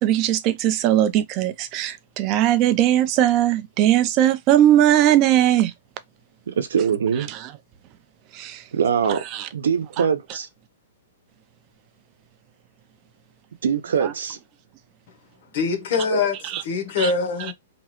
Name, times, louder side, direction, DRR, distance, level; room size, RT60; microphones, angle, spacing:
voice 1, 0.0-5.7 7.3-7.5 8.3-8.6 9.3-9.5 14.0-14.1 16.5-16.6 17.0-17.1, right 12 dB, 25° right, 0.4 m, -19 dB
voice 2, 6.6-7.3 8.7-9.2 9.5-10.5 13.6-14.4 16.1-16.2, right 7 dB, 85° right, 0.7 m, -22 dB
voice 3, 15.5-17.5, left 5 dB, 45° left, 0.8 m, -24 dB
2.9 x 2.3 x 3.0 m
hypercardioid pair, 170°, 0 cm